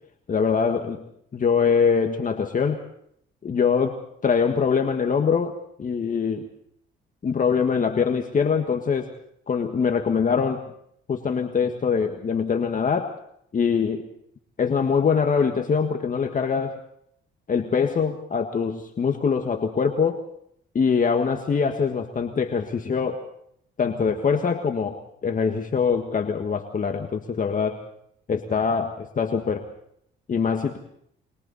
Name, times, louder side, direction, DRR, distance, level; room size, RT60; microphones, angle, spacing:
voice 1, 0.3-1.0 1.3-2.8 3.4-6.5 7.2-9.1 9.5-10.6 11.1-13.2 13.5-14.0 14.6-16.8 17.5-20.2 20.7-23.2 23.8-27.8 28.3-29.7 30.3-30.8, left 6 dB, 40° left, 5 dB, 1.8 m, -23 dB
29.0 x 24.0 x 4.2 m, 0.69 s
cardioid pair, 90°, 20 cm